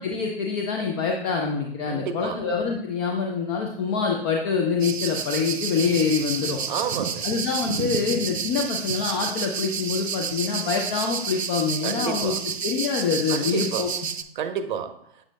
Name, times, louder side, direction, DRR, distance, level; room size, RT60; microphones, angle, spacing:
voice 1, 0.0-6.6 7.2-12.3 12.6-13.9, left 5 dB, 20° left, 1 dB, 0.4 m, -25 dB
voice 2, 1.9-2.4 6.7-7.3 11.8-12.4 13.3-13.9 14.4-15.0, right 7 dB, 50° right, 9 dB, 0.7 m, -30 dB
sound 1, 4.8-14.2, right 6 dB, 85° right, 0.5 m, -30 dB
7.3 x 6.1 x 2.2 m, 0.70 s
figure-of-eight pair, 120°, 31 cm